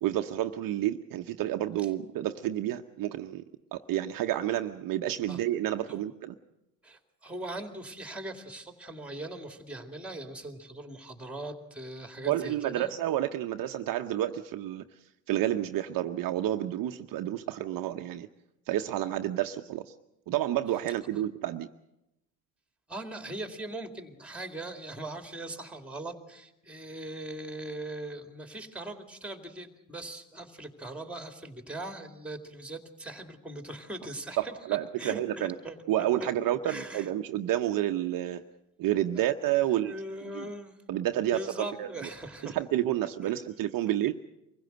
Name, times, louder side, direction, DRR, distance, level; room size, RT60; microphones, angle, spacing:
voice 1, 0.0-3.4 3.7-6.3 12.2-14.8 15.3-18.3 18.7-19.9 20.3-21.7 34.4-35.5 35.9-38.4 38.8-39.9 40.3-40.5 40.9-41.9 42.4-44.1, right 13 dB, 50° right, 6 dB, 0.9 m, -30 dB
voice 2, 6.8-12.9 22.9-35.8 36.2-36.3 36.6-37.1 39.7-40.8 41.2-42.6 43.2-43.3, right 1 dB, 5° right, 7 dB, 2.4 m, -40 dB
24.5 x 16.0 x 7.9 m, 0.88 s
supercardioid pair, 105°, 44 cm